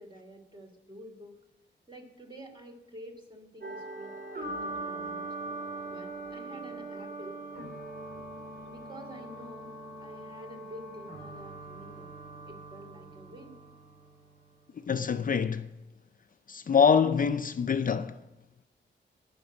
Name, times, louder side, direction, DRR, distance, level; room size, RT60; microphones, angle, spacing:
voice 1, 0.0-1.4 1.9-5.3 5.9-7.4 8.6-9.7 10.0-12.1 12.5-13.6, equal, 25° right, 2.7 m, -49 dB
sound 1, 3.6-14.6, right 2 dB, 50° right, 3.9 m, -41 dB
voice 2, 14.9-15.7 16.5-18.2, left 6 dB, 45° left, 0.5 m, -25 dB
13.5 x 6.1 x 8.8 m
cardioid pair, 85°, 20 cm